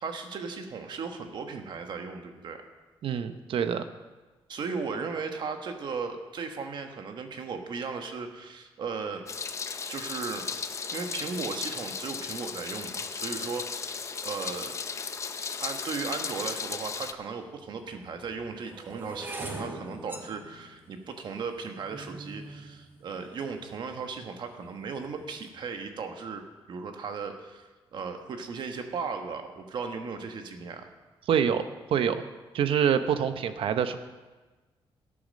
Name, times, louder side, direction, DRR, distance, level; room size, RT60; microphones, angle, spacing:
voice 1, 0.0-2.6 4.5-9.2 9.9-10.5 10.9-14.7 15.6-30.9, right 5 dB, 50° right, 5 dB, 1.3 m, -36 dB
voice 2, 3.0-3.8 31.3-31.6 31.9-32.2 32.5-34.0, right 8 dB, 65° right, 10 dB, 0.8 m, -25 dB
Meow, 9.3-17.1, left 5 dB, 30° left, 0.6 m, -35 dB
sound 1, 17.0-17.1 17.8-24.0 24.6-25.0 25.2-25.6, right 2 dB, 20° right, 1.2 m, -43 dB
13.0 x 8.6 x 6.4 m, 1.3 s
wide cardioid pair, 170°, 10 cm